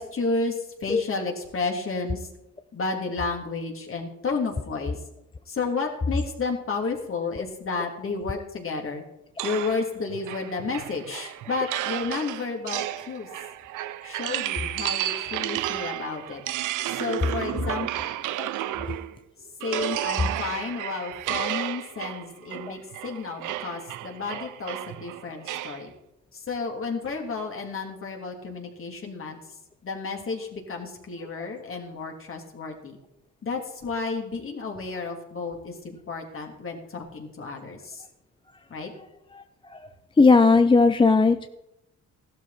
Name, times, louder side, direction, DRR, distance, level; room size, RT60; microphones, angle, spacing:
voice 1, 0.0-2.3 2.7-5.0 5.5-9.0 9.4-13.3 14.0-16.4 16.9-18.1 19.6-25.9 26.3-29.4 29.8-33.0 33.4-38.0 38.7-38.9, left 4 dB, 45° left, 2 dB, 3.3 m, -32 dB
sound 1, 9.4-19.2 19.6-25.8, right 14 dB, 90° right, 0.7 m, -32 dB
voice 2, 40.2-41.4, left 4 dB, 15° left, 9 dB, 0.6 m, -16 dB
15.0 x 12.0 x 4.4 m, 0.89 s
cardioid pair, 90°, 30 cm